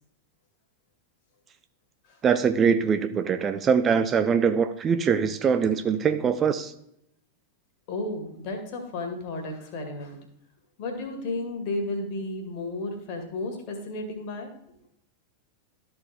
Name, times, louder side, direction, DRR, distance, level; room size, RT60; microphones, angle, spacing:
voice 1, 2.2-6.7, right 6 dB, 25° right, 0.4 m, -23 dB
voice 2, 7.9-10.2 10.8-14.5, left 2 dB, 45° left, 1.9 m, -33 dB
13.0 x 4.4 x 3.4 m
figure-of-eight pair, 90°, 0 cm